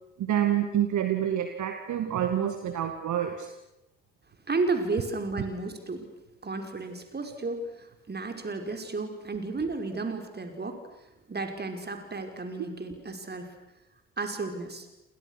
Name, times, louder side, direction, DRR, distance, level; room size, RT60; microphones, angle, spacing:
voice 1, 0.2-3.5, right 10 dB, 50° right, 7 dB, 2.3 m, -27 dB
voice 2, 4.5-6.1 6.4-10.8 11.3-13.5 14.2-14.9, right 3 dB, 25° right, 6 dB, 5.7 m, -33 dB
29.5 x 28.5 x 6.6 m, 0.92 s
figure-of-eight pair, 45°, 37 cm